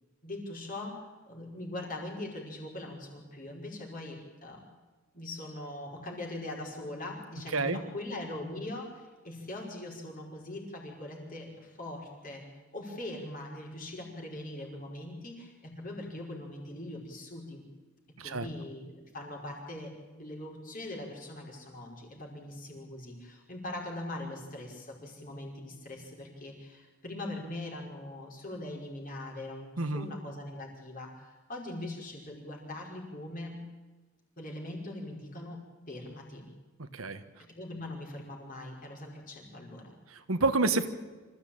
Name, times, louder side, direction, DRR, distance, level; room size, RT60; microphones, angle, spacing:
voice 1, 0.2-4.7 5.1-12.4 12.7-17.6 18.2-33.7 34.4-36.5 37.4-39.9, left 1 dB, 40° left, 0 dB, 5.4 m, -41 dB
voice 2, 29.8-30.1 36.9-37.2 40.1-40.9, right 3 dB, 80° right, 9 dB, 1.5 m, -28 dB
26.0 x 14.5 x 8.9 m, 1.3 s
head